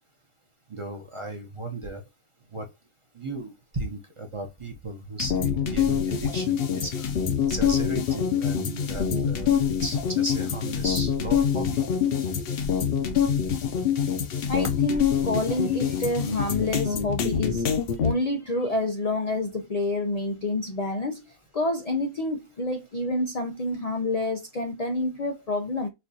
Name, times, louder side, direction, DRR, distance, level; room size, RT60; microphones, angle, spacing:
voice 1, 0.7-2.0 2.5-2.7 3.1-7.1 7.5-11.8, right 1 dB, 30° right, 0.6 m, -35 dB
sound 1, 5.2-18.1, left 8 dB, 55° left, 0.7 m, -25 dB
voice 2, 14.5-17.6 18.0-25.9, left 2 dB, 85° left, 0.3 m, -28 dB
4.4 x 2.4 x 2.7 m
omnidirectional pair, 1.5 m